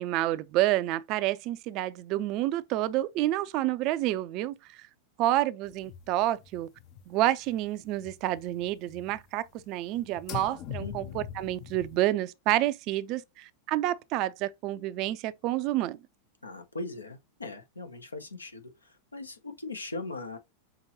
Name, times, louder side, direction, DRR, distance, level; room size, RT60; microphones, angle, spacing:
voice 1, 0.0-4.9 5.2-6.7 7.1-16.0, right 14 dB, 40° right, 0.4 m, -29 dB
sound 1, 5.7-7.6 7.8-9.6 9.9-12.0, left 10 dB, 40° left, 0.6 m, -43 dB
voice 2, 10.8-11.2 16.4-20.4, left 3 dB, 80° left, 0.9 m, -40 dB
6.0 x 2.9 x 2.8 m
figure-of-eight pair, 90°, 0 cm